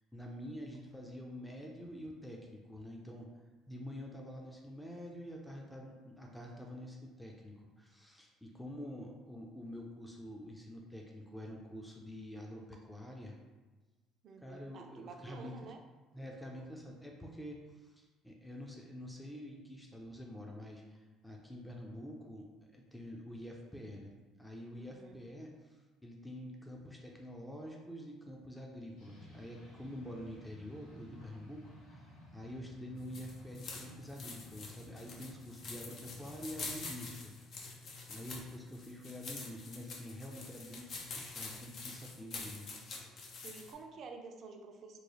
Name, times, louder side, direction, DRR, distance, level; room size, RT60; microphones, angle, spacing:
voice 1, 0.1-3.3 3.7-13.4 14.4-15.5 16.1-24.1 24.4-25.5 26.0-37.3 37.7-37.8 38.1-40.9 41.1-42.7, equal, 5° left, -1 dB, 0.6 m, -47 dB
voice 2, 14.2-15.8 24.7-25.2 43.4-45.0, right 4 dB, 55° right, 4 dB, 0.4 m, -50 dB
sound 1, 29.0-36.6, left 1 dB, 70° left, 0.9 m, -56 dB
sound 2, 33.0-43.7, left 3 dB, 50° left, 0.6 m, -46 dB
3.1 x 2.2 x 3.9 m, 1.2 s
hypercardioid pair, 60°, 0 cm